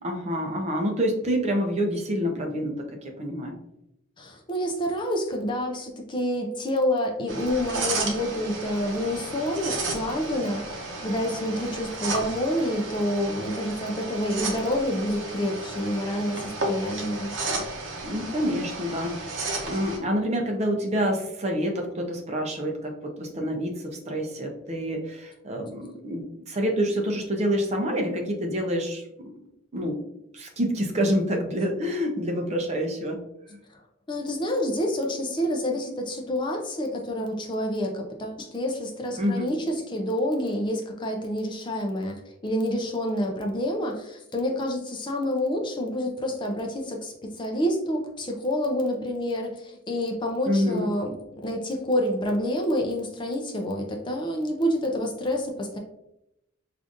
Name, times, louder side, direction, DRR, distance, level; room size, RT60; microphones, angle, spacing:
voice 1, 0.0-3.6 18.0-19.1 19.6-29.1 29.7-30.0 30.3-33.2 33.5-33.6 39.2-39.5 50.5-50.9, equal, 30° right, 2 dB, 0.5 m, -27 dB
voice 2, 4.2-17.6 33.7-33.8 34.1-51.1 51.4-55.8, equal, 25° left, 2 dB, 0.4 m, -28 dB
sound 1, 7.3-20.0, right 2 dB, 60° right, 0.7 m, -33 dB
4.9 x 2.5 x 2.5 m, 0.84 s
head